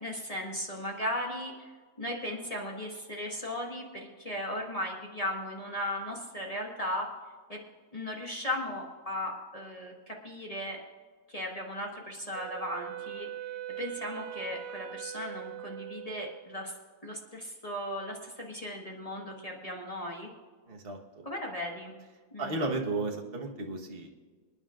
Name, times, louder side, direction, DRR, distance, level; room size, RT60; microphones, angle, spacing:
voice 1, 0.0-1.7 2.0-7.1 7.5-7.6 7.9-10.8 11.3-13.3 13.8-16.7 17.0-20.3 21.2-21.9 22.3-22.5, left 1 dB, 25° left, -1 dB, 1.6 m, -36 dB
Wind instrument woodwind instrument, 12.3-16.7, right 12 dB, 65° right, 0.7 m, -41 dB
voice 2, 20.7-21.2 22.4-24.1, right 2 dB, 40° right, 1 dB, 1.5 m, -34 dB
26.0 x 9.8 x 2.5 m, 1.5 s
omnidirectional pair, 1.7 m